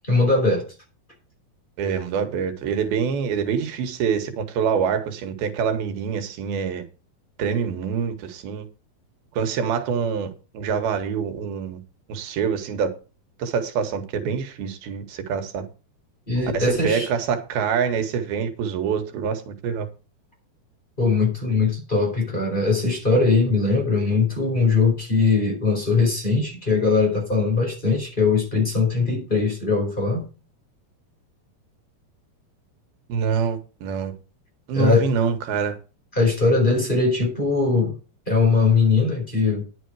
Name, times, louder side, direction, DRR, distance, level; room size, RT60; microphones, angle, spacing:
voice 1, 0.1-0.6 16.3-17.1 21.0-30.3 34.7-35.1 36.1-37.9 38.3-39.6, left 4 dB, 15° left, 4.4 m, -20 dB
voice 2, 1.8-6.8 7.4-8.7 9.3-11.8 12.1-12.9 13.4-15.7 16.5-19.9 33.1-34.1 34.7-35.8, right 6 dB, 90° right, 3.4 m, -25 dB
10.5 x 9.0 x 4.8 m
omnidirectional pair, 4.2 m